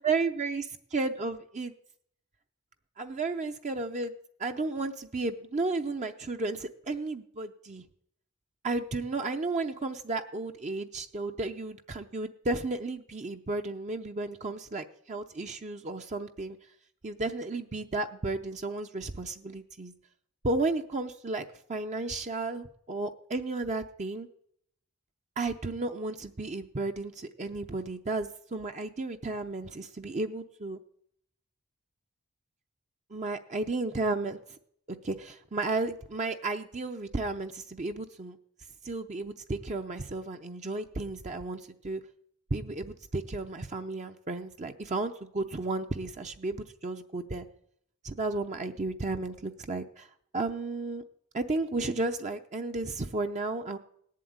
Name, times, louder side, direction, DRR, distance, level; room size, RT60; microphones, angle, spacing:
voice 1, 0.0-0.6 0.9-1.7 3.0-4.1 4.4-7.8 8.6-16.6 17.0-19.9 20.4-24.3 25.4-30.8 33.1-34.4 35.0-38.4 38.8-42.0 42.5-47.5 48.0-51.0 51.3-53.8, right 3 dB, 35° right, 5 dB, 0.6 m, -33 dB
18.0 x 7.6 x 9.4 m, 0.71 s
head